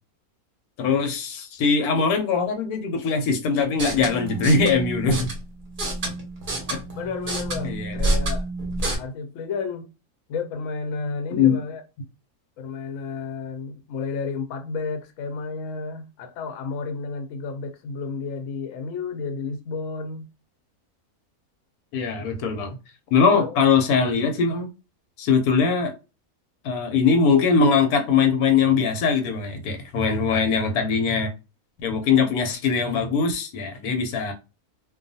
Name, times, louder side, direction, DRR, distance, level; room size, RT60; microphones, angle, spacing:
voice 1, 0.8-5.3 6.7-6.8 7.6-8.0 11.3-11.6 21.9-22.8 23.1-24.7 25.2-25.9 26.6-31.3 31.8-34.3, left 5 dB, 90° left, 1.1 m, -21 dB
sound 1, 3.7-9.0, right 1 dB, 45° right, 0.7 m, -28 dB
voice 2, 7.0-8.5 9.0-9.9 10.3-11.8 12.6-20.3 22.2-22.3 23.3-23.5, left 4 dB, 70° left, 0.9 m, -32 dB
2.4 x 2.3 x 2.6 m
omnidirectional pair, 1.6 m